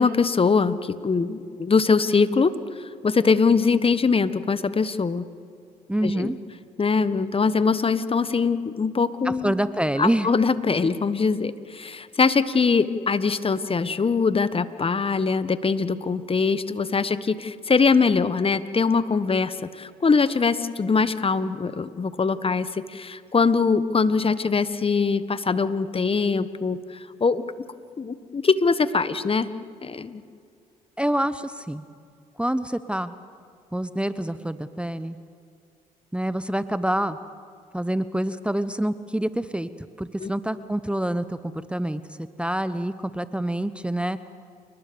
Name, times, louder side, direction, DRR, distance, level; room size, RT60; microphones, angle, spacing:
voice 1, 0.0-2.5 2.8-5.2 6.0-6.3 6.8-9.5 10.0-27.4 28.0-29.5 29.8-30.2 40.2-40.3, left 4 dB, 35° left, 14 dB, 1.3 m, -22 dB
voice 2, 5.9-6.4 9.2-10.3 31.0-31.8 32.4-33.1 33.7-35.2 36.1-37.2 37.7-39.7 40.0-42.0 42.4-44.2, right 1 dB, 5° right, 13 dB, 1.0 m, -26 dB
29.5 x 20.0 x 7.0 m, 2.4 s
hypercardioid pair, 55°, 17 cm